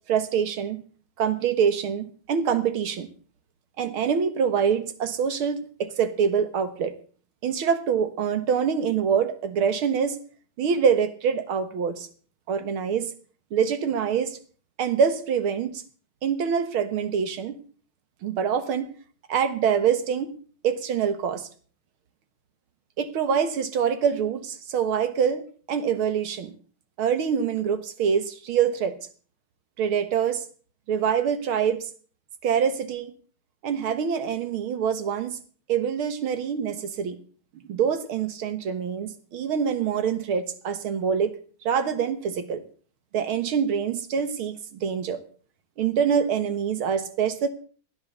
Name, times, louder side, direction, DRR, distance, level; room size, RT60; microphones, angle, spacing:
voice 1, 0.1-0.8 1.2-3.1 3.8-6.9 7.4-10.2 10.6-12.1 12.5-13.1 13.5-14.4 14.8-15.8 16.2-17.6 18.2-18.9 19.3-20.4 20.6-21.5 23.0-26.5 27.0-29.0 29.8-30.4 30.9-31.9 32.4-33.1 33.6-35.4 35.7-37.2 37.7-41.4 41.6-42.6 43.1-45.2 45.8-47.5, right 7 dB, 80° right, 11 dB, 2.3 m, -25 dB
16.5 x 9.7 x 6.7 m, 0.43 s
omnidirectional pair, 2.3 m